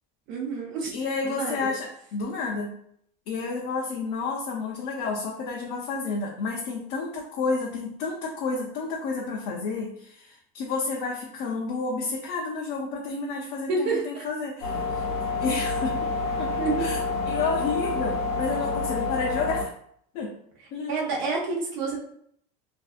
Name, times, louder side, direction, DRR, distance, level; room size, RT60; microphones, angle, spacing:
voice 1, 0.3-0.9 1.2-1.7 13.7-14.3 16.6-16.9 20.9-22.0, right 4 dB, 65° right, -2 dB, 0.7 m, -28 dB
voice 2, 0.9-2.7 3.3-14.9 15.4-16.0 16.4-17.0 17.3-19.7 20.1-20.4 20.7-20.9, left 4 dB, 60° left, -1 dB, 0.5 m, -30 dB
sound 1, 14.6-19.6, left 3 dB, 85° left, 1.0 m, -28 dB
2.6 x 2.4 x 2.4 m, 0.66 s
supercardioid pair, 125°, 19 cm